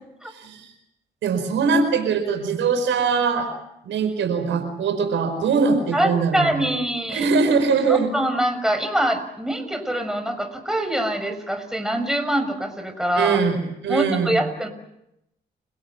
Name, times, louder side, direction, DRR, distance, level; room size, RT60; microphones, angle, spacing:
voice 1, 0.3-0.7 1.2-3.5 3.8-6.7 7.1-8.1 13.2-13.6 13.8-14.4, right 5 dB, 85° right, 6 dB, 5.1 m, -22 dB
voice 2, 5.9-7.3 7.9-13.4 13.9-14.7, right 1 dB, 5° right, 7 dB, 6.1 m, -24 dB
29.5 x 17.0 x 9.3 m, 0.83 s
supercardioid pair, 55°, 19 cm